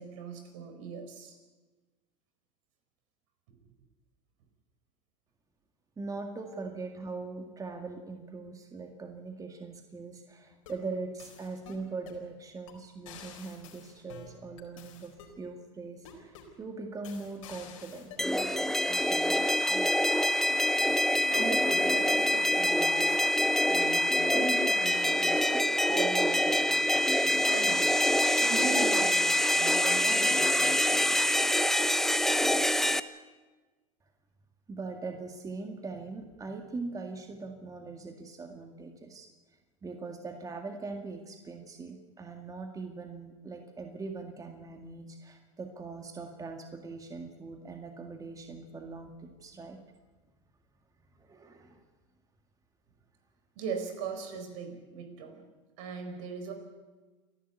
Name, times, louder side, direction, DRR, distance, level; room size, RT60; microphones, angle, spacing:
voice 1, 0.0-1.4 3.5-3.6 21.3-23.3 23.6-28.0 28.4-31.2 53.6-55.4 55.8-56.5, right 5 dB, 70° right, 6 dB, 4.5 m, -39 dB
voice 2, 6.0-15.1 15.4-19.9 34.7-39.3 39.8-49.8 51.2-51.8, right 3 dB, 20° right, 4 dB, 2.0 m, -41 dB
sound 1, 10.4-10.9 11.2-12.2 12.7-12.8 13.1-15.4 16.0-16.6 17.0-18.5, left 6 dB, 80° left, 4.3 m, -50 dB
sound 2, 18.2-33.0, left 1 dB, ahead, 0.8 m, -25 dB
30.0 x 11.5 x 8.2 m, 1.3 s
hypercardioid pair, 95°, 17 cm